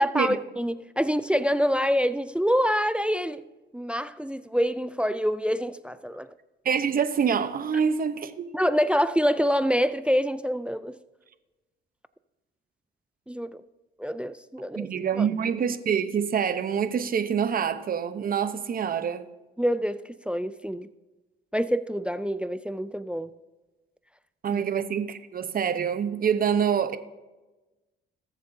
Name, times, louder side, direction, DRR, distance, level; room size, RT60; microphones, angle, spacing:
voice 1, 0.0-3.4 3.7-6.3 8.5-11.0 13.3-13.6 14.0-14.9 15.2-15.3 19.6-20.9 21.5-23.3 24.5-24.6, equal, 5° right, 0.4 m, -26 dB
voice 2, 6.6-8.5 14.8-19.3 24.4-27.0, right 7 dB, 45° right, 0.9 m, -26 dB
19.5 x 7.4 x 2.7 m
cardioid pair, 90°, 20 cm